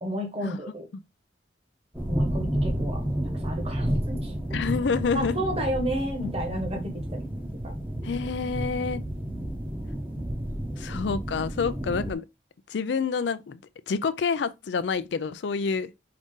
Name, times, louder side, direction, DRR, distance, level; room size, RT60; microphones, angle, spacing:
voice 1, 0.0-0.9 2.1-3.0 3.4-4.6 5.1-7.2 7.6-7.7, right 1 dB, 35° right, 1.1 m, -32 dB
sound 1, 1.9-12.1, right 1 dB, 10° right, 0.8 m, -31 dB
voice 2, 4.5-5.3 8.0-9.0 10.8-12.2 12.7-13.6 13.9-15.9, left 5 dB, 65° left, 0.4 m, -28 dB
4.8 x 2.7 x 3.6 m
head